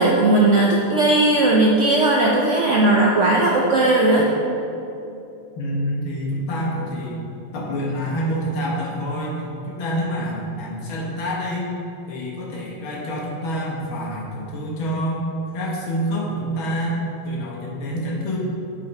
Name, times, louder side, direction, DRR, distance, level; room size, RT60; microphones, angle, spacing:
voice 1, 0.0-4.3, right 2 dB, 65° right, -3 dB, 0.7 m, -17 dB
voice 2, 5.6-7.3 7.5-11.7 12.1-15.3 15.5-18.4, equal, 90° left, -3 dB, 2.1 m, -27 dB
8.6 x 4.8 x 5.2 m, 2.8 s
omnidirectional pair, 2.2 m